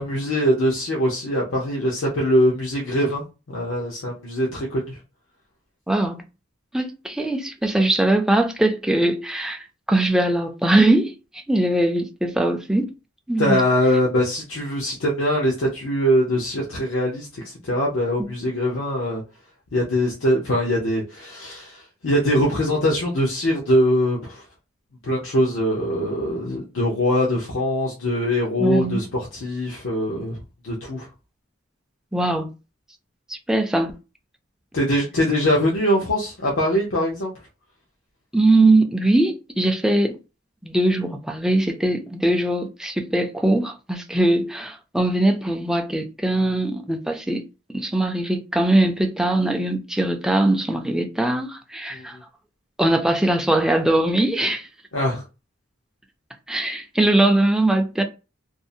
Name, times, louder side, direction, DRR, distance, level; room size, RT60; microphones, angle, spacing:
voice 1, 0.0-5.0 13.4-19.2 19.7-24.4 25.0-30.4 30.6-31.1 34.7-37.3 51.9-52.2 54.9-55.2, equal, 85° left, 0.7 m, -22 dB
voice 2, 5.9-6.2 6.7-12.9 13.3-13.6 18.2-18.3 28.6-29.0 32.1-32.6 33.3-33.9 38.3-40.2 40.6-47.4 47.7-52.2 52.8-54.7 56.5-58.0, right 1 dB, 5° right, 0.3 m, -21 dB
2.6 x 2.0 x 2.5 m
head